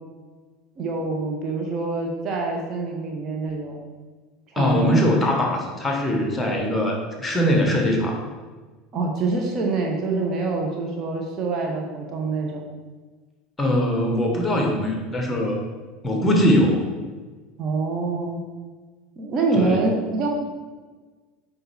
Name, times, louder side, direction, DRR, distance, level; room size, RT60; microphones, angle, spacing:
voice 1, 0.8-3.8 4.5-5.0 8.9-12.6 17.6-18.4 19.2-20.3, right 3 dB, 35° right, 0 dB, 1.3 m, -25 dB
voice 2, 4.5-8.3 13.6-15.6 16.0-16.9 19.5-19.8, equal, 15° left, 1 dB, 1.5 m, -21 dB
8.1 x 5.3 x 3.5 m, 1.3 s
figure-of-eight pair, 75°, 0 cm